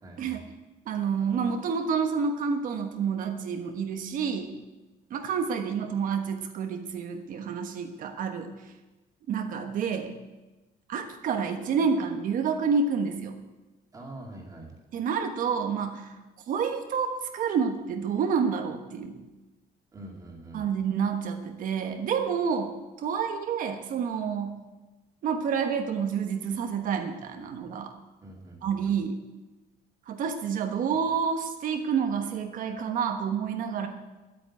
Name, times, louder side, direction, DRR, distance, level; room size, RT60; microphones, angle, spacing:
voice 1, 0.0-0.4 13.9-14.8 19.9-20.7 28.2-28.8, right 1 dB, 20° right, 0 dB, 2.3 m, -44 dB
voice 2, 0.9-4.5 5.1-8.5 9.3-10.1 10.9-13.3 14.9-16.1 16.5-19.2 20.5-22.7 23.0-24.6 25.2-27.9 28.6-29.2 30.1-33.9, right 6 dB, 55° right, 5 dB, 1.2 m, -29 dB
10.0 x 8.7 x 9.8 m, 1.1 s
cardioid pair, 170°, 17 cm